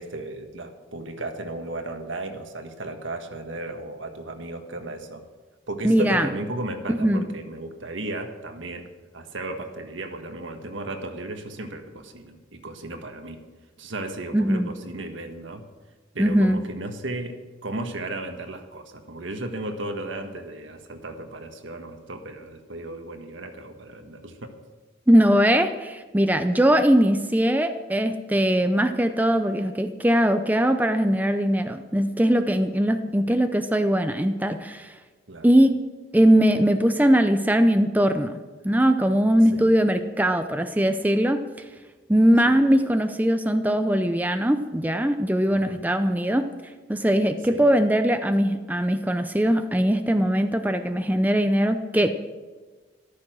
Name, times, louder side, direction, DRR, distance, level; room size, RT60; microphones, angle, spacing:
voice 1, 0.0-5.2 5.7-8.9 9.1-13.4 13.8-15.6 16.1-24.5 33.0-33.1 35.3-35.5 39.5-39.7 42.5-42.7 45.5-45.9 47.5-47.7, right 2 dB, 80° right, 6 dB, 1.6 m, -35 dB
voice 2, 5.8-6.3 6.9-7.2 14.3-14.7 16.2-16.6 25.1-34.9 35.4-35.7 36.1-38.4 38.6-41.4 42.1-46.5 46.9-52.2, equal, 10° right, 7 dB, 0.6 m, -21 dB
13.5 x 12.5 x 6.3 m, 1.3 s
head